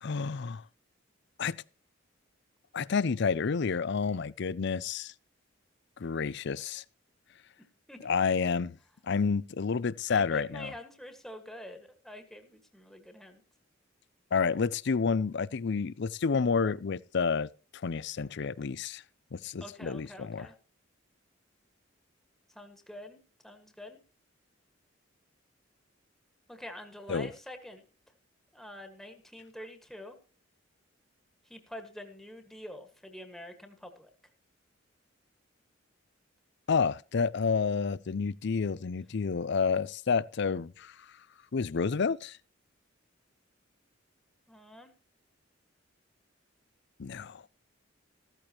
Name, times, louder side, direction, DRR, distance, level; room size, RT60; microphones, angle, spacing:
voice 1, 0.0-0.6 1.4-1.6 2.7-5.1 6.0-6.8 8.0-8.8 9.0-10.7 14.3-19.0 19.3-20.5 27.1-27.3 36.7-40.9 41.5-42.4 47.0-47.4, left 5 dB, 60° left, 0.5 m, -29 dB
voice 2, 10.1-13.4 19.6-20.5 22.5-24.0 26.5-27.9 28.5-30.2 31.5-34.1 44.5-44.9, left 1 dB, ahead, 1.6 m, -46 dB
14.5 x 14.0 x 2.9 m
head